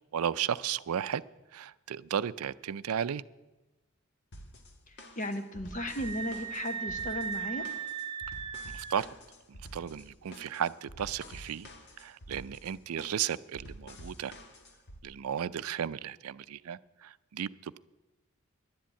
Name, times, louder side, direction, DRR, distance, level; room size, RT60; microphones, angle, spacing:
voice 1, 0.1-1.2 1.5-3.2 8.7-9.1 9.7-11.7 12.0-14.3 15.0-17.8, right 8 dB, 90° right, 17 dB, 0.4 m, -34 dB
sound 1, 4.3-15.0, equal, 55° left, 1.4 m, -49 dB
voice 2, 4.9-7.7, left 1 dB, 35° left, 8 dB, 1.1 m, -36 dB
Screaming, 5.7-9.1, right 7 dB, 25° right, 0.8 m, -38 dB
11.5 x 10.5 x 8.3 m, 1.1 s
head